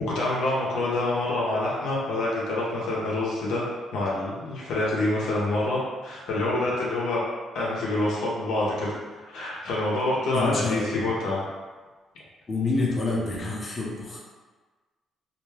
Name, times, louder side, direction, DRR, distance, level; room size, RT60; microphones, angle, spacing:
voice 1, 0.1-3.6 3.9-7.2 7.5-11.4, left 2 dB, 80° left, -5 dB, 0.7 m, -27 dB
voice 2, 10.3-11.1 12.5-14.2, left 3 dB, 35° left, -4 dB, 0.7 m, -27 dB
2.5 x 2.2 x 3.2 m, 1.3 s
cardioid pair, 90°, 0 cm